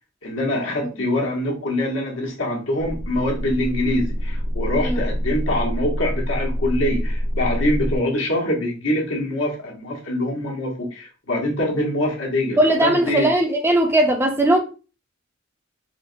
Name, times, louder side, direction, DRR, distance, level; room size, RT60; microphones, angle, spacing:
voice 1, 0.2-13.3, left 1 dB, 80° left, 1.1 m, -24 dB
sound 1, 2.8-8.0, equal, 70° right, 0.9 m, -26 dB
voice 2, 12.6-14.6, right 1 dB, 10° right, 0.5 m, -18 dB
4.4 x 2.1 x 2.6 m
head